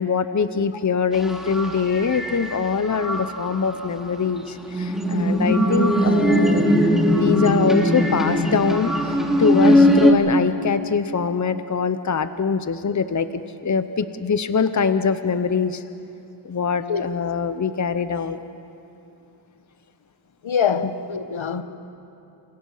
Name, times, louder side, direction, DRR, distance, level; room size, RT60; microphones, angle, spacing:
voice 1, 0.0-6.7 7.0-13.3 13.6-15.8 16.4-18.4, left 5 dB, 40° left, 0.9 m, -23 dB
sound 1, 1.1-2.6 2.8-3.9 4.7-10.1, equal, ahead, 2.9 m, -20 dB
voice 2, 20.4-21.6, left 7 dB, 75° left, 1.3 m, -24 dB
29.0 x 29.0 x 5.7 m
wide cardioid pair, 100°, 47 cm